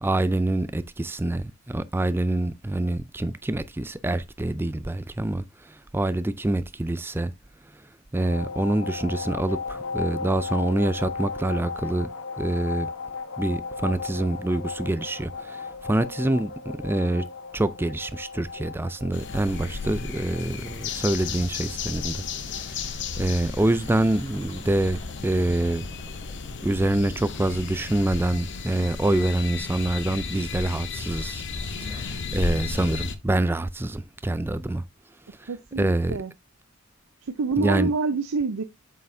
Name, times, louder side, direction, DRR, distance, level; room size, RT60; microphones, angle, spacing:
voice 1, 0.0-5.4 5.9-7.3 8.1-12.1 12.4-12.9 13.4-16.5 16.8-17.3 17.5-22.2 22.6-25.9 26.6-31.4 31.7-34.8 35.8-36.2 37.6-37.9, right 1 dB, 10° right, 0.3 m, -26 dB
sound 1, 8.1-26.7, left 4 dB, 80° left, 1.3 m, -37 dB
sound 2, 19.1-33.2, left 4 dB, 55° left, 0.7 m, -34 dB
sound 3, 20.4-30.5, left 2 dB, 20° left, 2.6 m, -51 dB
voice 2, 35.5-36.3 37.2-38.6, right 4 dB, 90° right, 0.6 m, -27 dB
7.6 x 5.7 x 2.6 m
head